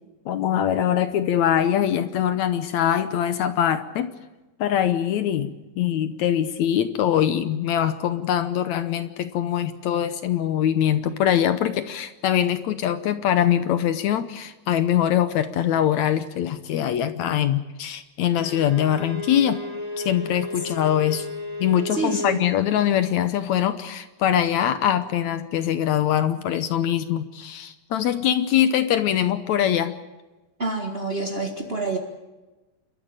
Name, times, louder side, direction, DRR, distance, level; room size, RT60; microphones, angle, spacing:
voice 1, 0.3-4.1 4.6-19.6 20.0-21.3 21.6-30.0, left 10 dB, 70° left, 11 dB, 1.8 m, -23 dB
Bowed string instrument, 18.3-22.4, left 2 dB, 15° left, 1.6 m, -33 dB
voice 2, 21.9-22.5 30.6-32.0, right 3 dB, 65° right, 2 dB, 0.5 m, -27 dB
28.5 x 13.0 x 8.9 m, 1.1 s
omnidirectional pair, 4.2 m